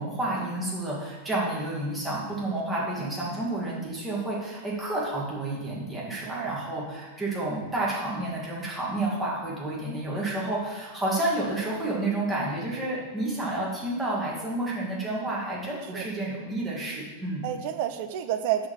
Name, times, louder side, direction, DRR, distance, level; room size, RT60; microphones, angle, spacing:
voice 1, 0.0-17.4, right 2 dB, 15° right, -5 dB, 2.2 m, -30 dB
voice 2, 2.6-2.9 6.3-6.7 15.9-16.1 17.4-18.7, right 10 dB, 50° right, 9 dB, 0.4 m, -30 dB
5.5 x 4.5 x 6.1 m, 1.3 s
figure-of-eight pair, 90°, 0 cm